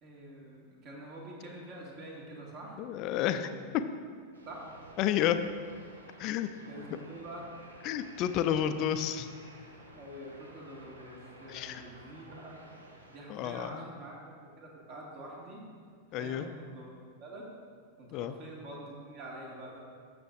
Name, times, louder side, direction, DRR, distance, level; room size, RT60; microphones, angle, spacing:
voice 1, 0.0-2.8 3.2-3.6 4.5-4.6 6.7-7.4 9.9-12.6 13.1-15.6 16.1-16.9 17.2-17.4 18.0-19.8, right 1 dB, 40° right, -2 dB, 2.1 m, -46 dB
voice 2, 2.8-3.5 5.0-5.4 6.2-6.5 7.8-9.3 11.5-11.8 13.3-13.8 16.1-16.5 18.1-18.3, left 10 dB, 40° left, 10 dB, 0.5 m, -30 dB
sound 1, 4.3-13.2, right 1 dB, 70° right, 1.0 m, -53 dB
14.0 x 6.9 x 2.6 m, 2.1 s
figure-of-eight pair, 90°, 0 cm